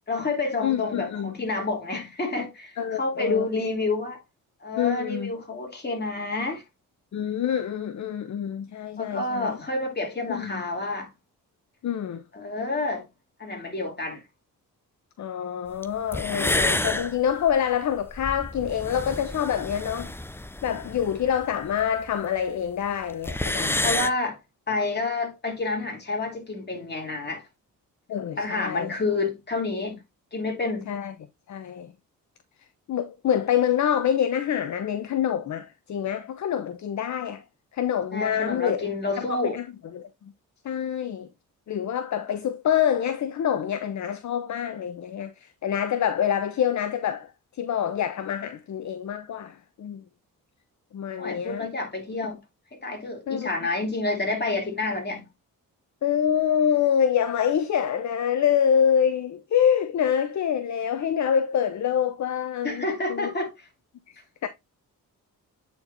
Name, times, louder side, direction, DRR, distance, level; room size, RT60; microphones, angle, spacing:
voice 1, 0.1-4.2 4.6-6.6 9.0-11.1 12.3-13.1 13.4-14.2 23.8-24.4 24.7-27.4 28.4-30.0 30.3-30.9 38.1-39.6 51.2-52.4 52.7-55.2 62.6-63.5, left 3 dB, 30° left, 2.6 m, -29 dB
voice 2, 0.6-1.3 2.8-3.5 4.8-5.3 7.1-9.6 10.3-10.5 11.8-12.2 15.2-20.1 20.6-24.0 28.1-28.9 30.9-31.1 31.5-31.9 32.9-37.4 37.7-38.9 39.2-39.7 39.9-40.1 40.6-41.3 41.7-50.0 50.9-51.7 53.3-53.5 56.0-62.8 63.1-63.3 64.1-64.5, left 9 dB, 55° left, 0.7 m, -26 dB
sound 1, 15.8-15.9 16.1-22.1 22.4-22.5 22.7-22.8 23.0-24.1, left 1 dB, 5° left, 0.5 m, -29 dB
8.6 x 4.5 x 2.6 m
cardioid pair, 80°, 35 cm